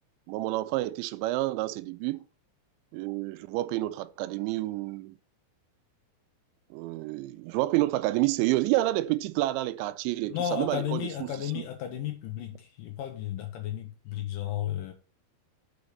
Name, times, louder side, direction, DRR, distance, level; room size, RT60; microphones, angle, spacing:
voice 1, 0.3-2.2 2.9-5.2 6.7-11.0, right 17 dB, 85° right, 2.9 m, -29 dB
voice 2, 10.3-14.9, left 10 dB, 90° left, 1.9 m, -33 dB
8.6 x 5.1 x 5.3 m
omnidirectional pair, 5.3 m